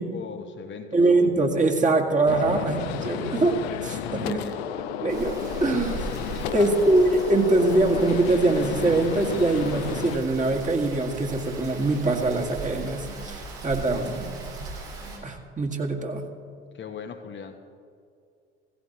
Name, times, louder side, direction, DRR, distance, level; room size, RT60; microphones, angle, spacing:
voice 1, 0.0-1.0 4.0-4.6 6.4-6.8 13.9-14.2 16.7-17.6, left 6 dB, 35° left, 5 dB, 1.0 m, -39 dB
voice 2, 0.9-4.4 5.0-6.1 6.5-14.3 14.6-14.7 15.2-16.2, right 2 dB, 25° right, 1 dB, 1.9 m, -23 dB
Gunshot gunfire, 2.3-10.2, left 9 dB, 70° left, 0.8 m, -32 dB
Rain, 5.1-15.2, right 4 dB, 75° right, 3.4 m, -38 dB
17.0 x 16.5 x 3.0 m, 2.4 s
figure-of-eight pair, 55°, 32 cm